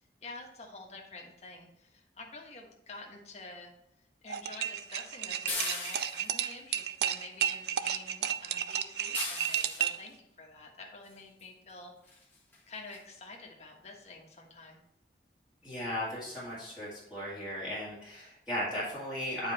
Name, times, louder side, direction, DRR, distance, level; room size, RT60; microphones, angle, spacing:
voice 1, 0.2-3.7 4.2-11.9 12.7-14.8, left 3 dB, 40° left, 0 dB, 1.4 m, -48 dB
sound 1, 4.3-10.1, right 10 dB, 65° right, 0.4 m, -32 dB
sound 2, 5.5-6.4 9.1-9.9 11.4-11.5 12.1-12.2 12.5-12.6 12.9-13.0, left 3 dB, 10° left, 1.3 m, -37 dB
voice 2, 15.6-19.5, equal, 5° right, -10 dB, 2.0 m, -36 dB
8.9 x 4.9 x 4.0 m, 0.82 s
head